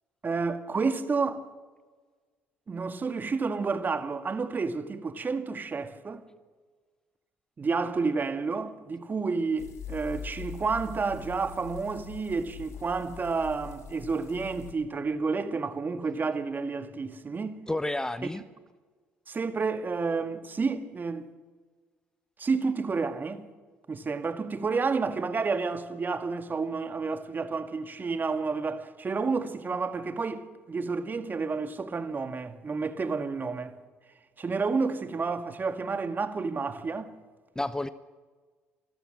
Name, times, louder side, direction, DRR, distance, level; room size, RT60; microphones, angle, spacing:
voice 1, 0.2-1.4 2.7-6.2 7.6-17.6 19.3-21.3 22.4-23.5 23.9-33.8 34.4-37.1, right 4 dB, 35° right, 1.9 m, -30 dB
sound 1, 9.6-14.7, left 7 dB, 60° left, 2.8 m, -43 dB
voice 2, 17.7-18.4 37.5-37.9, left 1 dB, 10° left, 0.8 m, -30 dB
28.0 x 13.5 x 7.6 m
hypercardioid pair, 60°, 6 cm